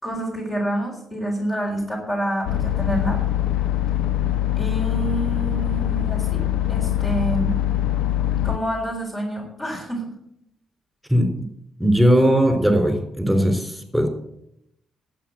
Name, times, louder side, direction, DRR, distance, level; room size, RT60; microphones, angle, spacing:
voice 1, 0.0-3.2 4.5-6.4 6.7-7.6 8.4-10.1, right 1 dB, 30° left, 0 dB, 3.9 m, -27 dB
sound 1, 2.5-8.6, left 12 dB, 80° left, 0.6 m, -23 dB
voice 2, 11.1-11.5 11.8-14.1, equal, ahead, 5 dB, 3.8 m, -19 dB
12.0 x 8.4 x 7.7 m, 0.76 s
cardioid pair, 90°, 0 cm